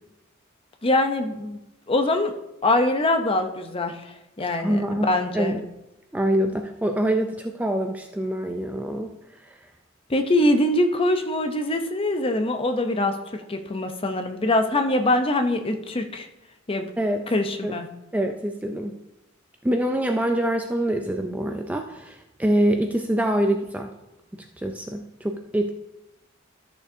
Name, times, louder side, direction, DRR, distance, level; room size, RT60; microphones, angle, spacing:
voice 1, 0.8-1.6 1.9-2.3 2.6-5.6 10.1-16.3 16.7-16.9 17.3-17.9, left 1 dB, 25° left, 6 dB, 0.6 m, -23 dB
voice 2, 4.4-5.6 6.1-9.6 17.0-17.2 17.6-17.8 18.1-19.0 19.6-23.9 24.3-25.7, right 1 dB, 5° right, 4 dB, 0.3 m, -25 dB
13.0 x 6.6 x 2.7 m, 0.92 s
head